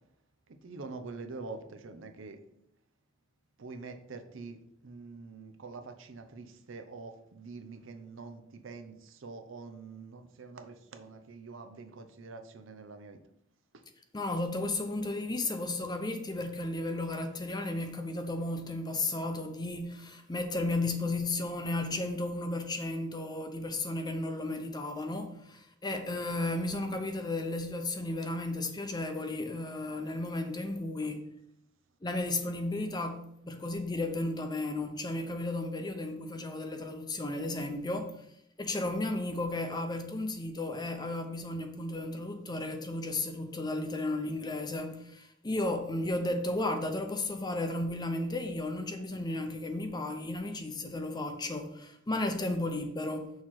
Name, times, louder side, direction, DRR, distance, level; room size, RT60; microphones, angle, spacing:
voice 1, 0.6-2.4 3.6-13.2 13.7-13.8, right 3 dB, 70° right, 0.6 m, -45 dB
voice 2, 14.1-31.2 32.0-38.2 38.6-53.3, left 2 dB, 20° left, 0.6 m, -34 dB
6.4 x 3.1 x 5.7 m
head